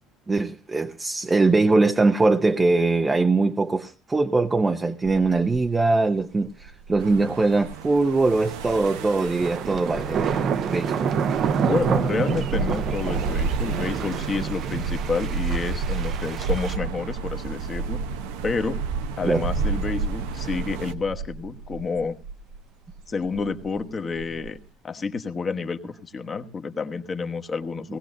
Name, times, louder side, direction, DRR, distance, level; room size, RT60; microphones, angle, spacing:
voice 1, 0.3-11.1 19.2-19.5, right 3 dB, 15° right, 0.7 m, -22 dB
sound 1, 5.0-5.7 6.2-6.3 6.6-22.6 22.9-23.8 24.2-24.5, right 4 dB, 70° right, 1.1 m, -31 dB
sound 2, 7.0-20.9, right 8 dB, 85° right, 0.8 m, -38 dB
sound 3, 8.8-16.8, right 7 dB, 50° right, 0.8 m, -28 dB
voice 2, 11.6-18.0 18.4-18.8 19.2-22.2 23.1-24.6 24.8-28.0, left 4 dB, 30° left, 1.2 m, -29 dB
18.5 x 16.0 x 2.6 m
supercardioid pair, 110°, 0 cm